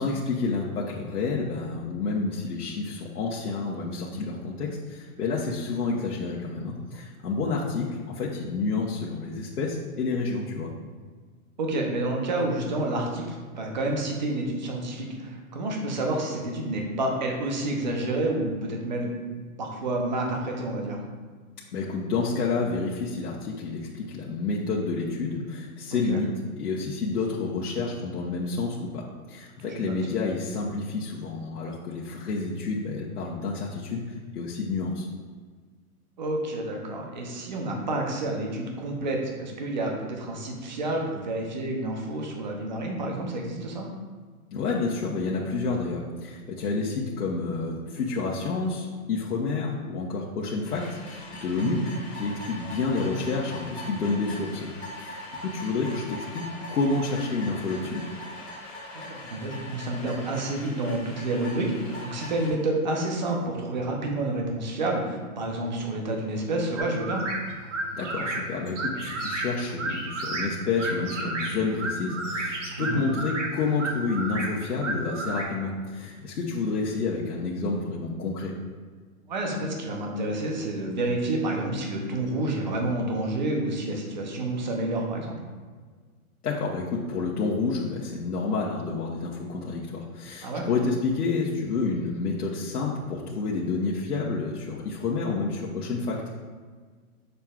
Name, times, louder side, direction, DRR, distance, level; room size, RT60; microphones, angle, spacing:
voice 1, 0.0-10.7 21.7-26.3 26.6-34.0 34.3-35.1 44.5-51.8 52.2-54.7 55.0-58.0 68.0-78.5 86.4-96.2, left 4 dB, 85° left, -5 dB, 1.2 m, -29 dB
voice 2, 11.6-19.1 19.6-21.0 25.9-26.2 29.6-29.9 36.2-43.9 51.6-51.8 58.9-61.7 62.0-67.2 72.8-73.0 79.3-85.4 90.4-90.7, right 2 dB, 30° right, 1 dB, 0.8 m, -29 dB
sound 1, 50.6-62.5, left 1 dB, ahead, 1.8 m, -41 dB
sound 2, 66.8-75.4, right 2 dB, 55° right, 1.3 m, -32 dB
7.3 x 6.5 x 2.4 m, 1.5 s
hypercardioid pair, 180°, 44 cm